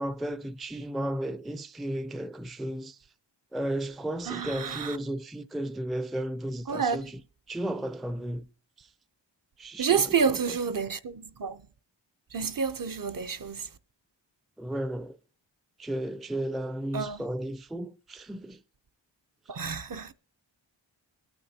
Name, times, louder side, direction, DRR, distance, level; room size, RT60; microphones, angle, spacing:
voice 1, 0.0-3.1 3.5-7.2 7.5-8.5 8.8-8.9 9.6-10.8 14.6-15.2 15.8-18.6 19.6-19.7, right 1 dB, ahead, 0.4 m, -34 dB
voice 2, 4.3-5.0 6.7-7.1 9.8-11.6 12.3-13.7 16.9-17.2 19.5-20.1, right 6 dB, 45° right, 0.6 m, -29 dB
19.5 x 9.1 x 2.8 m
wide cardioid pair, 75°, 46 cm